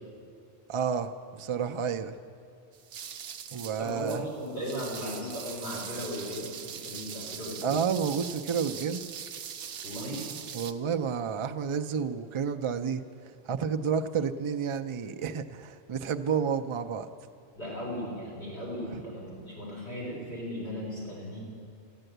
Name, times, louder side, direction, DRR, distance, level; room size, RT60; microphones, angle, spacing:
voice 1, 0.7-2.1 3.5-4.2 7.6-9.0 10.5-13.0 13.5-17.1, right 7 dB, 50° right, 8 dB, 0.3 m, -30 dB
sound 1, 2.7-10.7, right 8 dB, 65° right, 0.8 m, -41 dB
voice 2, 3.8-7.8 9.8-10.3 17.5-21.4, equal, 65° left, -7 dB, 4.3 m, -37 dB
14.0 x 10.0 x 7.9 m, 2.3 s
omnidirectional pair, 1.2 m